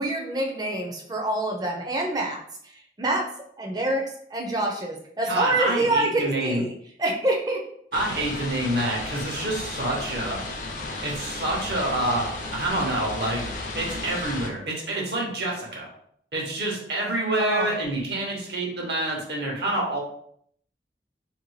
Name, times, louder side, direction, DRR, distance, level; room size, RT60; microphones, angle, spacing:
voice 1, 0.0-2.4 3.0-3.3 3.6-6.7 7.0-7.6 17.3-17.7, right 2 dB, 20° right, 1 dB, 0.4 m, -26 dB
voice 2, 5.3-6.6 7.9-10.4 11.0-15.9 16.3-20.0, right 1 dB, 70° right, -2 dB, 0.9 m, -27 dB
sound 1, 7.9-14.5, left 3 dB, 45° left, 0.4 m, -34 dB
2.6 x 2.6 x 3.1 m, 0.67 s
head